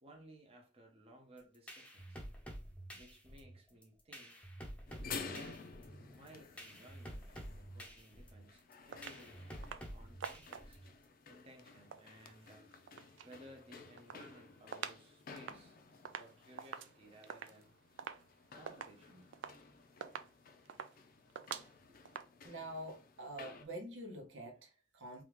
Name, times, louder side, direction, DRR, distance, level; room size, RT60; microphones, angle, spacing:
voice 1, 0.0-2.2 2.9-4.5 5.2-5.7 6.0-9.6 9.9-10.9 11.3-12.7 13.2-15.8 16.1-17.7 18.5-19.2 21.8-22.0, right 1 dB, 30° right, 0.7 m, -59 dB
sound 1, 1.4-11.0, equal, 5° left, 0.6 m, -50 dB
sound 2, 4.9-23.6, left 5 dB, 50° left, 0.5 m, -53 dB
sound 3, 8.9-9.2 9.6-9.9 10.2-10.9 11.7-13.3 13.7-15.0 15.3-22.3, right 7 dB, 70° right, 0.3 m, -48 dB
voice 2, 22.4-25.2, right 1 dB, 90° right, 0.9 m, -46 dB
3.4 x 2.4 x 3.0 m
head